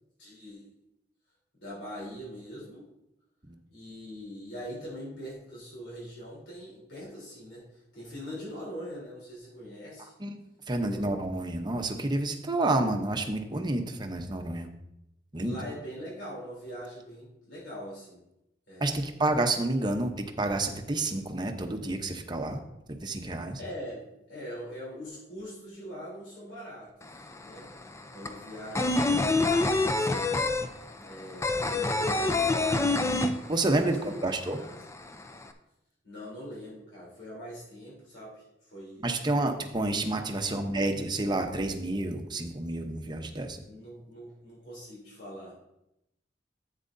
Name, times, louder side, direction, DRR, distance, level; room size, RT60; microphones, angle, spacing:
voice 1, 0.2-0.7 1.6-2.9 3.7-10.1 10.7-11.0 15.4-18.2 18.7-19.1 23.6-27.7 28.1-33.2 33.6-34.2 34.6-34.8 36.0-39.1 40.3-40.5 43.7-45.7, equal, 90° left, -6 dB, 3.4 m, -43 dB
voice 2, 10.7-14.7 15.3-15.6 18.8-22.6 23.0-23.6 33.5-34.6 39.0-43.6, right 2 dB, 25° right, 5 dB, 0.8 m, -29 dB
sound 1, 27.0-27.1 27.4-34.0 34.2-34.3 34.6-35.4, left 2 dB, 15° left, 0.5 m, -26 dB
10.5 x 8.2 x 2.6 m, 0.86 s
head